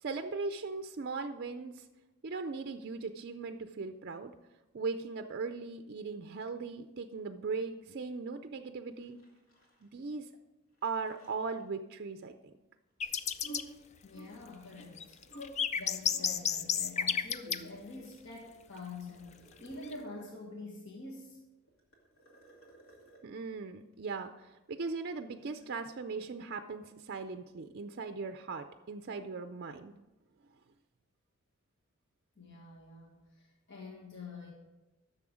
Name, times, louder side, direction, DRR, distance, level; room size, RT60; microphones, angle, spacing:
voice 1, 0.0-1.9 2.2-4.3 4.7-9.2 9.8-10.3 10.8-12.5 23.2-29.9, right 4 dB, 50° right, 8 dB, 0.4 m, -39 dB
sound 1, 8.9-10.0 10.3-10.4 10.8-11.6 13.3-15.5 15.7-16.3 17.1-17.9 18.4-20.6 21.7-23.3 24.9-25.6, right 1 dB, 90° left, 2.2 m, -53 dB
sound 2, 13.0-13.6 14.8-17.6 19.7-19.9, left 7 dB, 35° left, 0.4 m, -31 dB
voice 2, 14.0-15.2 15.7-21.4 32.4-34.5, left 3 dB, 60° left, -1 dB, 1.5 m, -46 dB
10.5 x 6.8 x 4.9 m, 1.0 s
head